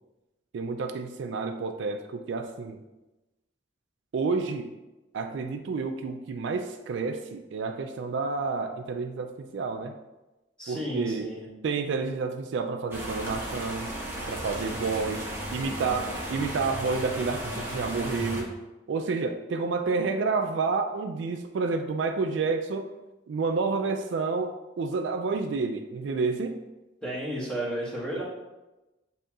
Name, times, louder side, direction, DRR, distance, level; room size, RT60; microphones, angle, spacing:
voice 1, 0.5-2.8 4.1-4.7 5.1-10.0 10.7-11.3 11.6-14.0 14.3-18.5 18.9-22.9 23.3-26.6, right 4 dB, 70° right, 6 dB, 0.3 m, -29 dB
voice 2, 10.6-11.5 27.0-28.2, equal, 5° left, -8 dB, 1.4 m, -33 dB
sound 1, 12.9-18.4, right 1 dB, 15° right, 0.9 m, -35 dB
7.6 x 2.8 x 2.4 m, 1.0 s
head